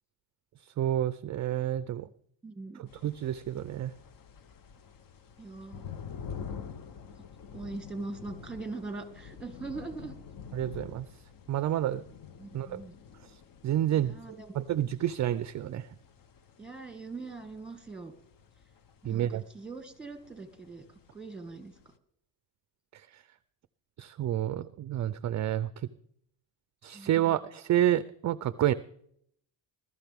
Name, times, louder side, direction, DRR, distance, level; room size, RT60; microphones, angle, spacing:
voice 1, 0.6-2.1 3.0-3.9 10.5-11.1 11.5-12.0 12.5-12.8 13.2-14.2 14.5-15.9 19.0-19.4 22.9-23.2 24.0-25.9 26.8-28.7, right 12 dB, 40° right, 15 dB, 0.4 m, -29 dB
voice 2, 2.4-2.8 5.4-5.9 7.5-10.1 12.4-13.0 13.9-14.6 16.6-18.1 19.0-20.8 21.1-21.7 26.9-27.1, right 3 dB, ahead, 6 dB, 1.9 m, -41 dB
sound 1, 2.9-22.0, left 7 dB, 50° left, 0.8 m, -48 dB
20.5 x 12.5 x 3.5 m, 0.69 s
cardioid pair, 150°, 44 cm